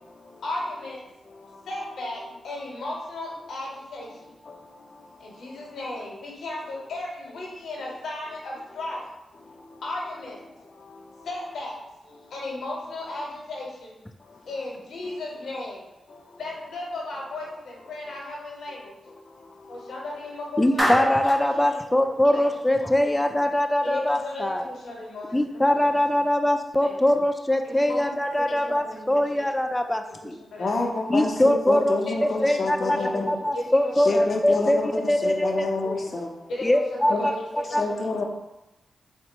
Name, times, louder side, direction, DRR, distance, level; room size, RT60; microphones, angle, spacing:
voice 1, 0.4-1.0 1.4-4.3 5.2-9.0 9.8-10.4 11.2-14.0 14.5-15.9 16.4-19.0 19.9-22.4 23.0-23.2 23.8-25.9 26.8-27.0 27.6-29.2 30.2-30.7 32.1-34.4 36.5-38.2, left 2 dB, 85° left, -2 dB, 0.9 m, -35 dB
voice 2, 20.6-24.7 25.3-30.4 31.1-33.0 33.3-34.8 35.1-36.1 36.6-37.8, left 1 dB, 10° left, 5 dB, 0.3 m, -23 dB
Clapping, 20.8-21.5, equal, 10° right, 0.9 m, -25 dB
voice 3, 30.6-33.4 34.0-36.3 37.1-37.4 37.8-38.2, left 3 dB, 50° left, 1 dB, 0.6 m, -28 dB
3.7 x 2.2 x 4.3 m, 0.95 s
cardioid pair, 80°, 0 cm